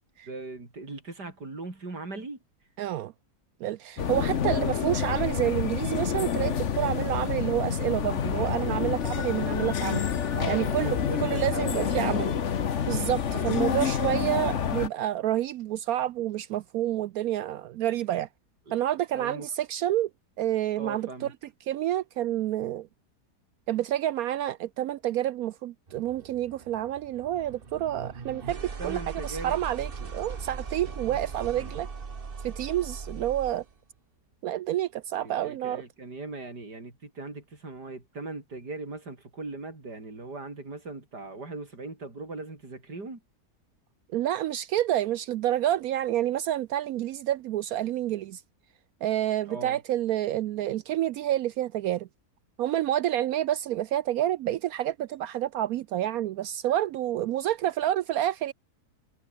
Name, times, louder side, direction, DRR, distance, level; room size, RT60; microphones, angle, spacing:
voice 1, 0.2-2.4 4.0-4.7 9.6-9.7 10.3-12.3 13.2-13.7 18.7-18.8 19.1-19.5 20.8-21.3 28.8-29.6 35.2-43.2 49.5-49.8, right 3 dB, 85° right, 5.8 m, -39 dB
voice 2, 2.8-3.1 3.6-10.0 10.5-12.3 12.9-18.3 18.7-20.1 20.4-21.3 21.7-22.9 23.7-31.9 32.4-33.6 34.4-35.8 44.1-48.4 49.0-52.1 52.6-58.5, right 12 dB, 70° right, 1.0 m, -28 dB
sound 1, 4.0-14.9, left 7 dB, 50° left, 1.3 m, -28 dB
sound 2, 25.9-33.7, right 5 dB, 35° right, 1.5 m, -39 dB
omnidirectional pair, 1.7 m